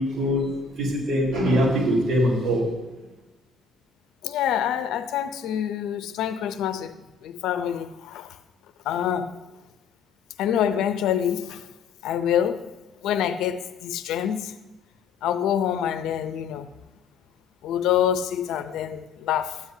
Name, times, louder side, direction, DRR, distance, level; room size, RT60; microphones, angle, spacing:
voice 1, 0.0-2.7, equal, 65° right, 3.6 m, -23 dB
voice 2, 4.2-7.0 7.2-8.4 8.8-9.4 10.4-11.7 12.0-12.7 13.0-14.5 15.2-16.7 17.6-19.6, left 9 dB, 90° left, 0.6 m, -26 dB
13.0 x 9.7 x 2.8 m
cardioid pair, 90°, 0 cm